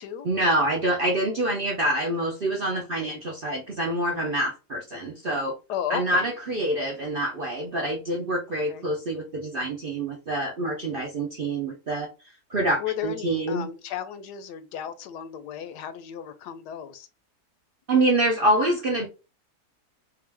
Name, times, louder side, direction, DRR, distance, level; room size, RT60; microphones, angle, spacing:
voice 1, 0.2-5.5 5.9-12.1 12.5-13.7 17.9-19.1, right 1 dB, 55° right, 0.6 m, -26 dB
voice 2, 2.8-3.2 4.9-5.0 5.7-6.3 8.7-8.9 12.8-17.1, left 9 dB, 80° left, 1.2 m, -34 dB
3.7 x 2.4 x 3.4 m
omnidirectional pair, 1.8 m